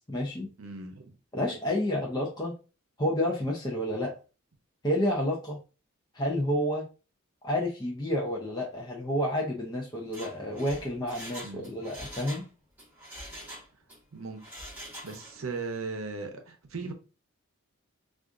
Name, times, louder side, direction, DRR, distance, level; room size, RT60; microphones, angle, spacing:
voice 1, 0.1-0.5 1.3-2.6 3.0-4.1 4.8-5.6 6.1-6.9 7.4-12.5, left 1 dB, 20° left, 0.5 m, -30 dB
voice 2, 0.6-1.1 11.4-11.7 14.1-14.4 15.0-16.9, right 4 dB, 70° right, 0.7 m, -37 dB
Mechanisms, 10.0-12.5 12.8-14.0 14.4-15.4 15.7-15.8, equal, 10° right, 1.2 m, -44 dB
4.7 x 2.5 x 2.5 m
head